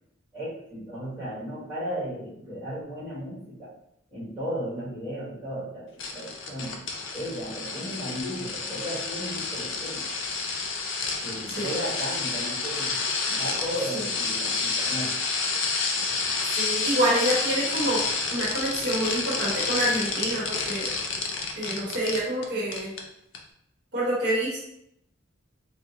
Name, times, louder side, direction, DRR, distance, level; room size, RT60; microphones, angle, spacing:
voice 1, 0.3-3.7 4.1-6.8 7.1-10.0 11.2-13.0 13.3-15.2, equal, 10° right, -10 dB, 1.3 m, -35 dB
sound 1, 6.0-22.4 22.7-23.0 23.3-23.4, left 4 dB, 60° left, 0.5 m, -29 dB
voice 2, 16.6-18.0 18.3-20.9 21.6-22.9 23.9-24.6, right 1 dB, 55° right, -6 dB, 1.0 m, -27 dB
3.6 x 2.2 x 2.8 m, 0.76 s
head